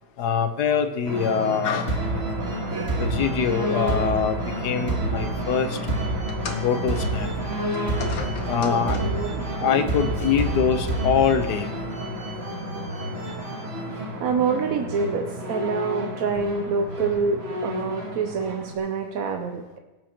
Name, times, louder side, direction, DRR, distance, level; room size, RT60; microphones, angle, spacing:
voice 1, 0.2-2.0 3.0-5.8 6.5-7.3 8.5-9.0 9.6-11.7, left 7 dB, 80° left, 8 dB, 1.5 m, -24 dB
sound 1, 1.0-18.7, right 1 dB, 40° right, 2.0 m, -29 dB
voice 2, 2.7-3.0 8.5-9.9 14.2-19.8, right 5 dB, 65° right, 5 dB, 1.1 m, -27 dB
sound 2, 6.3-9.3 10.3-10.5 11.3-11.4, left 5 dB, 65° left, 1.5 m, -37 dB
22.5 x 7.6 x 3.0 m, 1.1 s
omnidirectional pair, 1.7 m